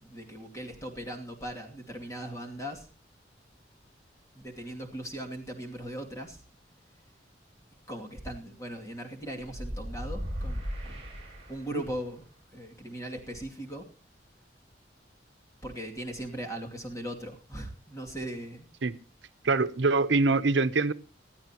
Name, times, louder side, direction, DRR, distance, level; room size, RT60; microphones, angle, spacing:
voice 1, 0.0-2.9 4.4-6.4 7.9-11.0 11.5-12.2 12.5-13.9 15.6-18.7, right 1 dB, 15° left, 1 dB, 2.5 m, -39 dB
sound 1, 9.5-12.0, equal, 30° right, 7.5 m, -37 dB
voice 2, 19.4-20.9, right 3 dB, 80° right, 11 dB, 0.8 m, -24 dB
20.5 x 13.5 x 3.0 m, 0.35 s
head